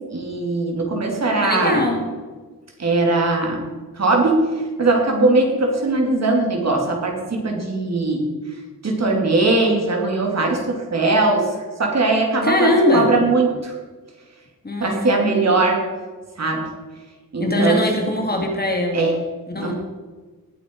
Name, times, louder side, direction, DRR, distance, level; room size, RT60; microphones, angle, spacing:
voice 1, 0.1-1.8 2.8-3.7 3.9-8.3 8.8-13.7 14.8-15.8 16.4-16.7 17.3-17.8 18.9-19.2 19.6-19.8, right 2 dB, 50° right, 0 dB, 2.9 m, -20 dB
voice 2, 1.4-2.0 12.4-13.1 14.6-15.1 17.4-19.0 19.5-19.7, left 1 dB, 25° left, 1 dB, 2.2 m, -20 dB
19.0 x 8.6 x 4.7 m, 1.4 s
wide cardioid pair, 180°, 35 cm